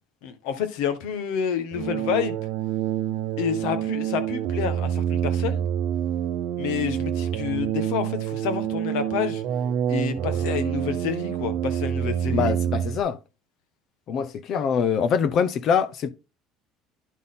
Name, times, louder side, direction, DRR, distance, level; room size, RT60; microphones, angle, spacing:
voice 1, 0.2-2.4 3.4-5.6 6.6-9.4 9.9-12.5, left 8 dB, 80° left, 1.4 m, -29 dB
sound 1, 1.7-13.0, right 10 dB, 70° right, 0.7 m, -27 dB
voice 2, 12.3-13.2 14.1-16.1, left 7 dB, 55° left, 0.8 m, -24 dB
11.0 x 4.0 x 3.8 m
supercardioid pair, 95°, 0 cm